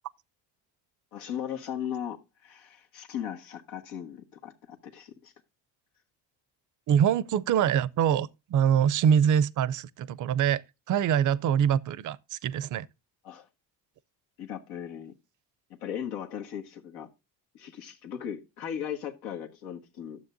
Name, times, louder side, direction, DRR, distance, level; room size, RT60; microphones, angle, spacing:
voice 1, 1.1-5.3 13.2-13.5 14.4-15.1 15.7-17.1 17.5-20.2, left 9 dB, 90° left, 1.6 m, -37 dB
voice 2, 6.9-10.6 10.9-12.9, right 8 dB, 45° right, 0.5 m, -24 dB
12.5 x 7.1 x 2.5 m
supercardioid pair, 80°, 45 cm